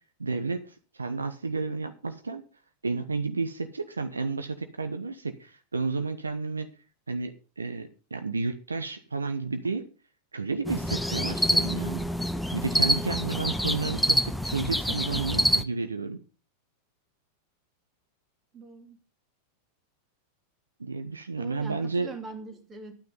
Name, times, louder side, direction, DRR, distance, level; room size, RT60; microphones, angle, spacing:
voice 1, 0.2-2.4 2.8-6.7 7.1-9.9 10.3-12.1 12.5-16.2 20.8-22.1, right 4 dB, 75° right, 0.9 m, -31 dB
sound 1, 10.6-15.6, equal, 5° left, 0.7 m, -26 dB
voice 2, 18.5-19.0 21.4-22.9, right 4 dB, 25° right, 2.6 m, -42 dB
11.5 x 9.4 x 5.5 m
figure-of-eight pair, 90°, 0 cm